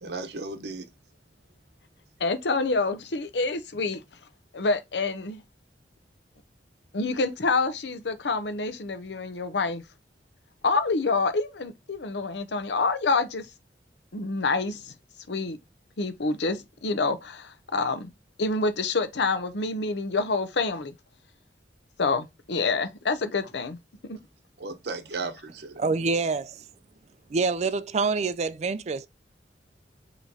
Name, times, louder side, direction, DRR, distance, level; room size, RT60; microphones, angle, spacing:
voice 1, 0.0-0.9 24.6-25.8, right 3 dB, 65° right, 0.8 m, -35 dB
voice 2, 2.2-4.0 4.5-5.4 6.9-9.8 10.6-13.5 14.1-14.9 15.3-15.6 16.0-18.1 18.4-20.9 22.0-23.8 24.1-24.2, left 3 dB, 75° left, 0.7 m, -27 dB
voice 3, 25.8-26.6 27.3-29.1, right 4 dB, 40° right, 0.4 m, -26 dB
5.6 x 3.0 x 2.6 m
head